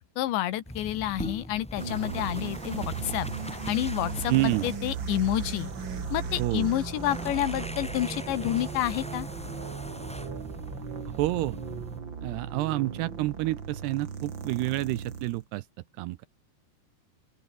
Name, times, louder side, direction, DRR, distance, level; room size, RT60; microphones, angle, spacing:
voice 1, 0.2-3.3 3.7-5.7 6.1-9.3, left 13 dB, 90° left, 3.8 m, -29 dB
sound 1, 0.6-12.0, equal, ahead, 5.1 m, -40 dB
sound 2, 1.8-15.4, right 6 dB, 35° right, 2.2 m, -37 dB
voice 2, 4.3-4.7 6.4-6.7 11.2-11.6 12.2-15.6 16.0-16.3, right 19 dB, 80° right, 2.7 m, -28 dB
open air
omnidirectional pair, 5.0 m